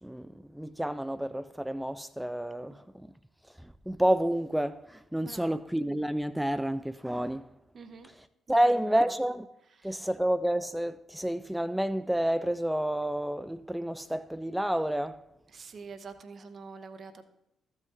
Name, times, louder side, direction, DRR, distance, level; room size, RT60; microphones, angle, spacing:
voice 1, 0.0-3.1 3.6-7.5 8.0-9.5 9.8-15.2, right 1 dB, 5° right, 0.4 m, -30 dB
voice 2, 5.2-5.6 7.7-8.1 8.5-8.6 8.9-9.0 9.9-10.0 15.5-17.2, right 4 dB, 45° right, 0.8 m, -45 dB
14.0 x 5.6 x 3.4 m
figure-of-eight pair, 40°, 0 cm